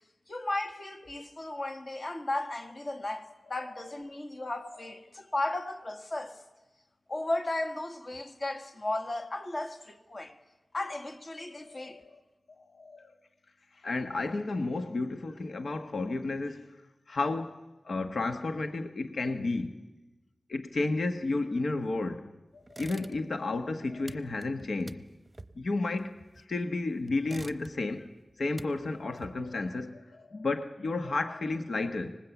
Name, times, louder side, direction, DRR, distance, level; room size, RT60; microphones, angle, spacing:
voice 1, 0.3-6.4 7.1-10.3 10.7-12.0, left 2 dB, 40° left, 1.6 m, -35 dB
voice 2, 11.5-12.1 12.6-13.1 13.8-16.7 17.1-17.6 17.8-19.9 20.5-22.3 22.5-25.1 25.5-28.1 28.4-32.2, left 3 dB, 75° left, 1.2 m, -32 dB
sound 1, 22.7-23.5 23.7-26.7 27.1-28.0 28.3-29.7, right 2 dB, 25° right, 0.8 m, -48 dB
25.5 x 19.5 x 8.1 m
wide cardioid pair, 100°, 0 cm